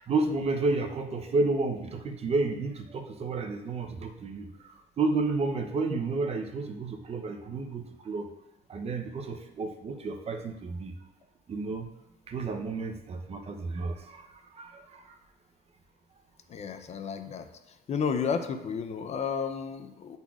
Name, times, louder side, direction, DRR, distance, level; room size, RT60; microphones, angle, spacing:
voice 1, 0.1-8.3 8.7-10.9 11.5-11.9 12.3-15.2, right 3 dB, 35° right, 5 dB, 0.6 m, -31 dB
voice 2, 16.5-17.5 17.9-20.2, left 6 dB, 40° left, 8 dB, 0.5 m, -32 dB
9.9 x 4.0 x 2.4 m, 0.92 s
cardioid pair, 110°, 17 cm